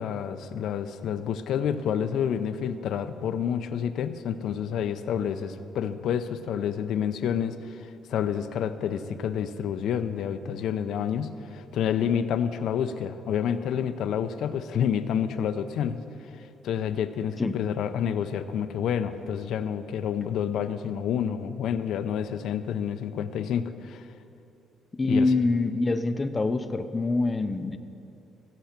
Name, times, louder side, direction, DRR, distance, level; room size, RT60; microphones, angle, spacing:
voice 1, 0.0-16.0 16.4-24.1 25.1-25.3, left 8 dB, 70° left, 11 dB, 0.5 m, -29 dB
voice 2, 25.0-27.8, left 3 dB, 20° left, 9 dB, 0.6 m, -25 dB
15.0 x 7.8 x 5.8 m, 2.8 s
cardioid pair, 110°, 0 cm